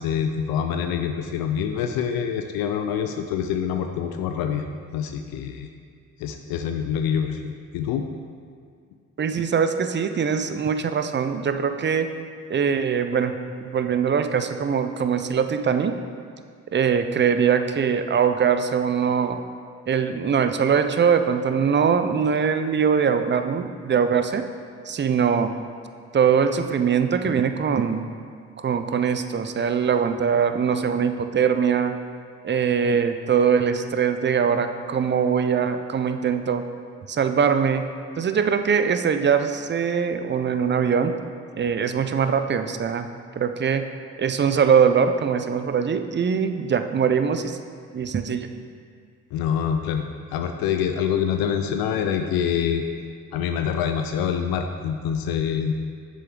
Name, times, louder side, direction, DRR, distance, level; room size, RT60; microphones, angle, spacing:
voice 1, 0.0-4.6 4.9-5.7 6.2-8.1 49.3-50.1 50.3-52.8 53.3-55.7, left 8 dB, 80° left, 6 dB, 0.5 m, -25 dB
voice 2, 9.2-12.1 12.5-13.3 13.6-16.0 16.7-19.4 19.9-24.4 24.9-25.5 26.1-28.1 28.6-31.9 32.4-36.6 37.1-37.9 38.2-41.1 41.6-43.1 43.4-43.9 44.2-47.6 47.9-48.5, right 7 dB, 30° right, 9 dB, 0.6 m, -22 dB
7.6 x 6.7 x 3.8 m, 2.1 s
supercardioid pair, 55°, 35 cm